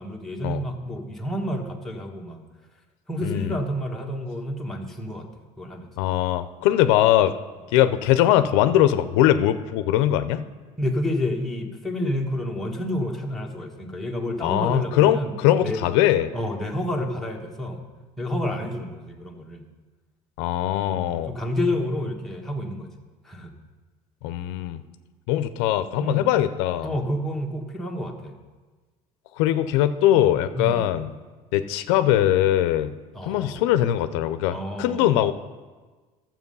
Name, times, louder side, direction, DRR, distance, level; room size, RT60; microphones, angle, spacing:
voice 1, 0.0-2.4 3.1-5.3 5.6-5.9 10.8-15.4 15.6-15.8 16.3-17.8 18.2-19.6 20.9-22.9 23.2-23.5 26.0-26.3 26.8-28.4 30.5-30.9 33.1-33.6 34.5-35.2, left 1 dB, ahead, -1 dB, 1.3 m, -29 dB
voice 2, 3.2-3.6 6.0-7.3 7.7-10.4 14.4-16.3 20.4-21.3 24.2-24.8 25.3-26.9 29.4-31.1 31.5-32.9 33.2-35.3, left 12 dB, 90° left, 11 dB, 0.5 m, -21 dB
12.0 x 7.5 x 5.4 m, 1.3 s
cardioid pair, 125°, 14 cm